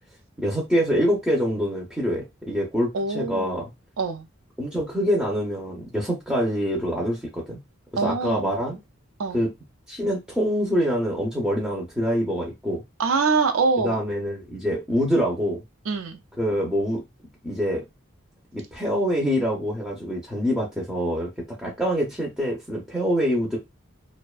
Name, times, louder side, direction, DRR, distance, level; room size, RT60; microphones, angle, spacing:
voice 1, 0.4-3.7 4.6-7.6 7.9-8.8 9.3-9.5 9.9-12.8 13.8-15.6 16.4-17.0 17.4-17.8 18.5-21.3 21.6-23.6, equal, 5° right, 0.5 m, -25 dB
voice 2, 2.9-3.6 4.0-4.3 8.0-8.5 9.2-9.4 13.0-14.0 15.9-16.2, right 4 dB, 75° right, 0.5 m, -24 dB
2.5 x 2.1 x 2.3 m
head